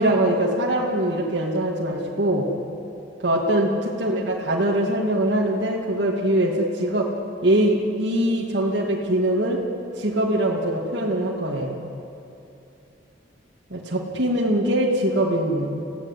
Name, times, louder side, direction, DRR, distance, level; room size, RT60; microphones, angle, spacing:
voice 1, 0.0-2.5 3.2-7.1 7.4-9.6 10.0-11.8 13.7-15.8, right 1 dB, 65° right, -3 dB, 2.4 m, -22 dB
25.0 x 16.5 x 9.9 m, 2.7 s
head